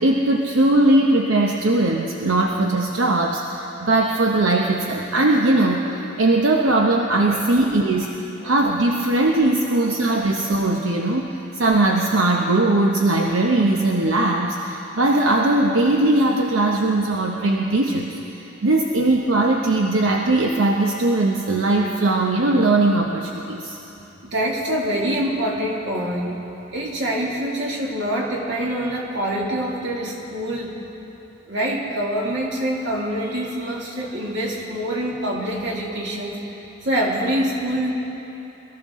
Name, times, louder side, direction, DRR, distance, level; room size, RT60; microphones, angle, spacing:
voice 1, 0.0-8.1 8.4-18.1 18.4-23.8, right 2 dB, 85° right, 0 dB, 0.8 m, -19 dB
voice 2, 24.2-26.4 26.7-30.8 31.5-36.4 36.8-37.9, right 1 dB, 65° right, -2 dB, 2.3 m, -25 dB
22.0 x 14.0 x 3.7 m, 3.0 s
head